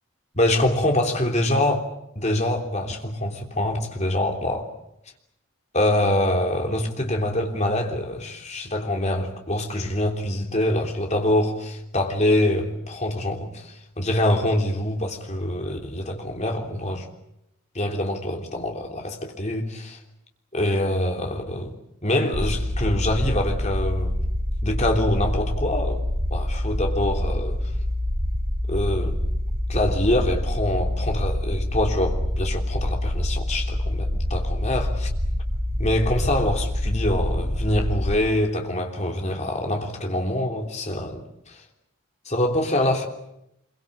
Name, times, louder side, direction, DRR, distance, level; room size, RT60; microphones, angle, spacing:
voice 1, 0.3-4.7 5.7-17.0 17.7-20.0 20.5-21.7 22.0-24.2 24.6-26.0 26.3-27.7 28.7-29.2 29.7-35.1 35.8-41.6 42.2-43.1, left 1 dB, 30° left, 3.3 m, -25 dB
sound 1, 22.3-38.2, left 1 dB, 55° right, 6.8 m, -26 dB
26.0 x 23.0 x 8.7 m
head